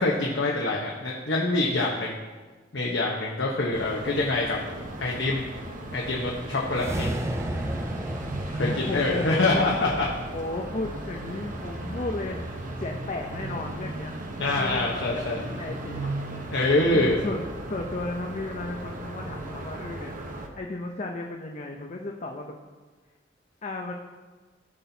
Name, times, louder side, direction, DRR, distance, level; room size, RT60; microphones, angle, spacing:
voice 1, 0.0-2.2 2.7-4.6 5.0-5.4 5.9-7.2 8.5-10.1 14.4-15.4 16.5-17.2, left 2 dB, 75° left, -2 dB, 1.1 m, -25 dB
sound 1, 3.7-20.5, right 1 dB, 45° right, 0.9 m, -36 dB
sound 2, 6.7-11.1, right 1 dB, 15° right, 0.5 m, -34 dB
voice 2, 8.6-9.7 10.3-12.5 12.8-14.2 14.5-16.2 16.9-20.2 20.5-22.6 23.6-23.9, left 2 dB, 40° left, 2 dB, 0.6 m, -34 dB
15.5 x 6.0 x 2.8 m, 1.3 s
head